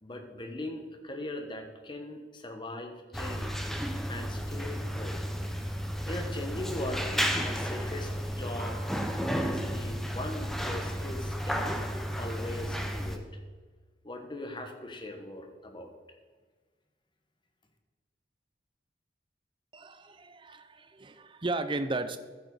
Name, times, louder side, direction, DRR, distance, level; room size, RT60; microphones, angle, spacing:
voice 1, 0.0-3.6 4.1-5.2 6.0-7.1 7.4-8.8 9.4-11.7 12.1-13.2 14.0-15.9, left 1 dB, 25° left, 4 dB, 1.3 m, -40 dB
sound 1, 3.1-13.2, equal, ahead, 0.8 m, -33 dB
voice 2, 19.7-22.2, right 2 dB, 30° right, 11 dB, 0.6 m, -35 dB
14.0 x 7.5 x 4.1 m, 1.4 s
head